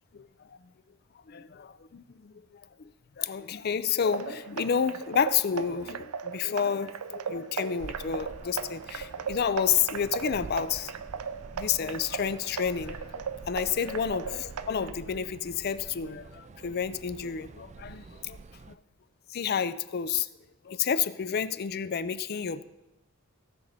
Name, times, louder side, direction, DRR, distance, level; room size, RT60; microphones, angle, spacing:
voice 1, 0.1-0.5 1.3-2.9 3.2-10.9 11.5-18.4 19.3-20.3 20.6-22.6, left 7 dB, 45° left, 15 dB, 0.4 m, -30 dB
sound 1, 4.1-14.9, right 6 dB, 90° right, 0.5 m, -38 dB
sound 2, 7.8-18.8, right 4 dB, 30° right, 0.3 m, -47 dB
16.0 x 6.6 x 4.1 m, 1.0 s
head